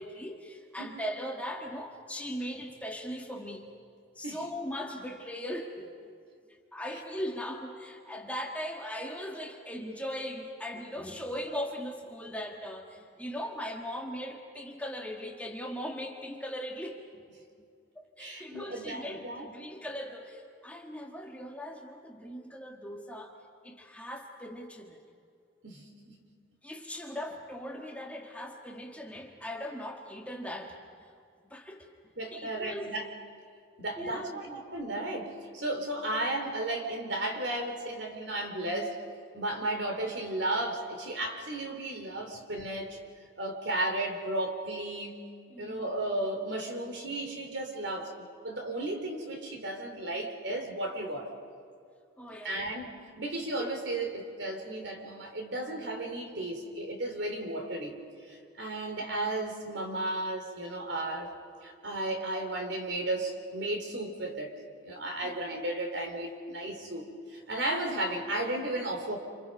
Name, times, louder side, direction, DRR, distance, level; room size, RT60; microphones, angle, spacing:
voice 1, 0.0-3.7 4.1-17.2 17.9-23.4 23.6-25.0 26.6-31.1 31.4-31.9 32.3-32.9 34.0-34.4 45.5-45.9 52.2-52.6 65.2-65.3, equal, 5° left, 1 dB, 1.6 m, -39 dB
voice 2, 18.2-19.5 25.6-26.2 32.2-33.1 33.8-38.9 39.3-43.0 43.4-45.2 45.6-48.1 48.4-51.3 52.4-58.0 58.2-61.3 61.6-64.5 64.8-69.2, right 1 dB, 60° right, 3 dB, 3.5 m, -34 dB
28.5 x 28.5 x 5.4 m, 2.3 s
head